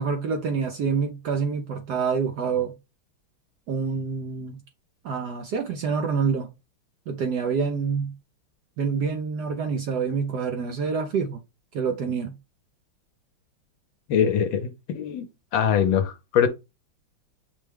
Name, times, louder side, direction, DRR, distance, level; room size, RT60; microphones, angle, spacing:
voice 1, 0.0-2.7 3.7-4.6 5.0-6.5 7.1-8.1 8.8-11.4 11.7-12.4, right 5 dB, 70° right, 1.0 m, -27 dB
voice 2, 14.1-15.3 15.5-16.5, left 8 dB, 70° left, 1.3 m, -23 dB
6.2 x 2.2 x 3.4 m
omnidirectional pair, 2.3 m